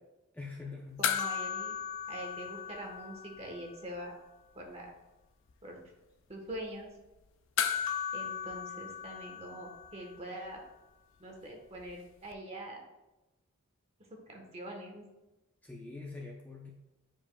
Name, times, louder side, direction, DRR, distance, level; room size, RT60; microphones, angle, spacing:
voice 1, 0.3-1.1 15.6-16.7, left 3 dB, 5° left, -2 dB, 0.6 m, -44 dB
sound 1, 1.0-3.7 3.9-4.0 7.6-10.2 12.3-12.4, left 8 dB, 60° left, 0.4 m, -36 dB
voice 2, 1.0-1.7 2.1-4.1 4.5-4.9 5.6-5.8 6.3-6.9 8.1-10.6 11.2-12.8 14.3-15.1, right 1 dB, 30° right, 1 dB, 1.2 m, -44 dB
9.5 x 4.9 x 2.3 m, 1.0 s
head